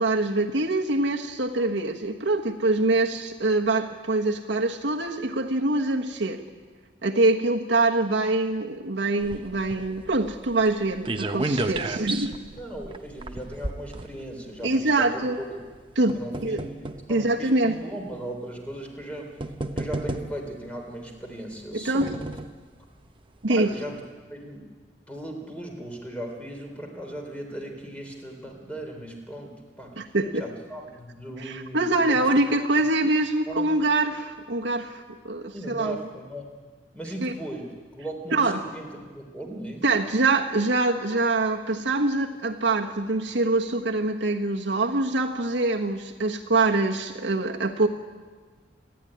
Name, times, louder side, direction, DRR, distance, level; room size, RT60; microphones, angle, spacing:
voice 1, 0.0-6.4 7.0-12.4 14.6-15.4 15.9-16.2 16.4-16.6 17.1-17.8 21.7-22.1 23.4-23.7 30.0-30.4 31.4-36.0 37.2-37.3 38.3-38.6 39.8-47.9, right 2 dB, 75° right, 1 dB, 1.3 m, -24 dB
sound 1, 9.2-14.7 15.5-17.1 17.9-18.0 19.0-19.1 19.4-20.6 21.5-22.6 23.1-23.2 23.4-23.5, right 2 dB, 30° right, 0.9 m, -33 dB
voice 2, 11.8-12.3 12.5-15.5 16.1-16.6 17.1-19.4 19.8-22.1 23.5-24.0 24.3-24.7 25.1-30.1 30.4-32.2 33.5-33.7 35.5-36.5 36.9-37.7 38.0-39.8, right 1 dB, 5° left, 2 dB, 3.6 m, -37 dB
28.5 x 11.0 x 10.0 m, 1.5 s
head